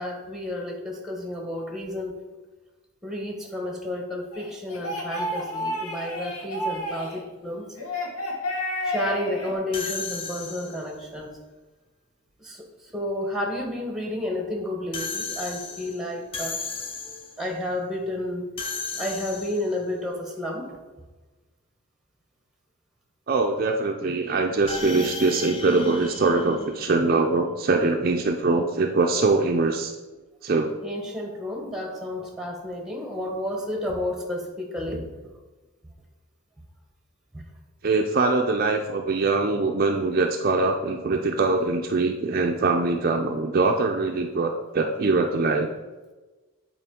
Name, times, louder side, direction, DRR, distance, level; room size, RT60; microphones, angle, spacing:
voice 1, 0.0-2.2 3.0-7.7 8.8-11.4 12.4-12.6 12.9-16.6 17.4-18.5 19.0-20.8 30.8-35.1 37.3-37.4, left 1 dB, ahead, 2 dB, 0.9 m, -31 dB
sound 1, 4.3-7.2 7.7-9.5, equal, 85° left, 1.3 m, -30 dB
sound 2, 9.7-11.0 14.9-17.5 18.6-19.8 24.7-27.2, left 4 dB, 25° left, 0.4 m, -35 dB
voice 2, 23.3-29.9 30.4-30.7 37.8-45.7, right 3 dB, 40° right, 3 dB, 0.4 m, -23 dB
8.2 x 4.3 x 3.7 m, 1.2 s
head